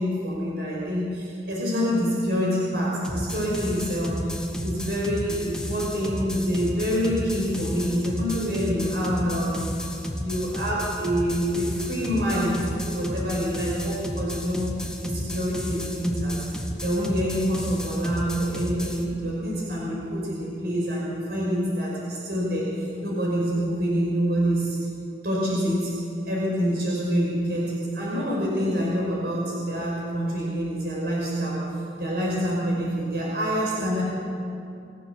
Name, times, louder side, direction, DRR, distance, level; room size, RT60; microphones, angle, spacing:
voice 1, 0.0-4.2 4.6-9.6 10.2-14.7 15.0-16.4 16.8-24.8 25.2-25.9 26.3-31.6 32.0-34.0, equal, 60° right, -5 dB, 5.6 m, -26 dB
sound 1, 3.0-19.0, left 1 dB, 5° left, 1.8 m, -33 dB
27.5 x 15.0 x 7.2 m, 2.6 s
head